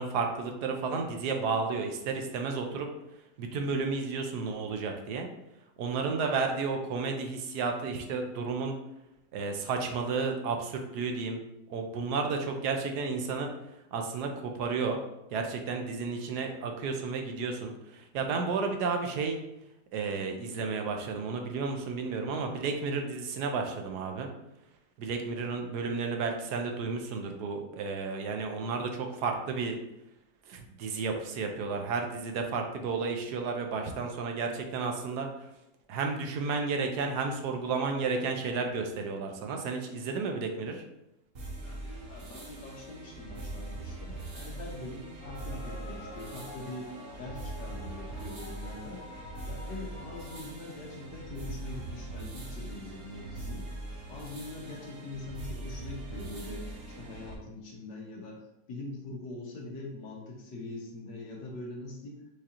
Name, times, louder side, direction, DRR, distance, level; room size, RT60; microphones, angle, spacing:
voice 1, 0.0-2.9 3.4-5.3 5.8-8.7 9.3-11.4 11.7-13.5 13.9-15.0 15.3-19.4 19.9-24.3 25.0-29.8 30.5-35.3 35.9-40.8, right 4 dB, 75° right, 4 dB, 1.2 m, -32 dB
sound 1, 41.3-57.3, right 2 dB, 45° right, 0.9 m, -42 dB
voice 2, 41.6-49.0 49.5-53.6 54.1-62.2, left 2 dB, 85° left, -1 dB, 1.6 m, -43 dB
sound 2, 45.2-50.4, left 1 dB, 55° left, 1.0 m, -48 dB
4.9 x 3.7 x 2.9 m, 0.88 s
omnidirectional pair, 1.8 m